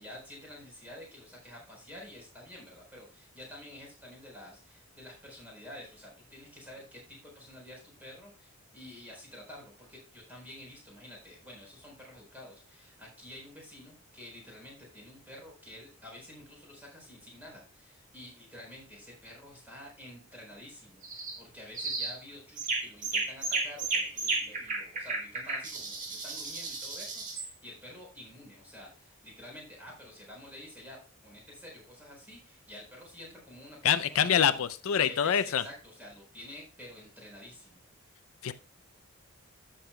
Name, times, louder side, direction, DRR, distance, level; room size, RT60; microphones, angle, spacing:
voice 1, 0.0-31.0 31.2-34.3 34.5-34.6 35.0-37.8, left 1 dB, 10° right, 4.2 m, -49 dB
sound 1, 21.0-21.4 21.8-22.2 22.6-27.5, right 3 dB, 35° right, 1.8 m, -33 dB
voice 2, 33.8-35.6 38.4-38.5, left 8 dB, 70° left, 0.4 m, -25 dB
13.5 x 6.5 x 2.2 m
head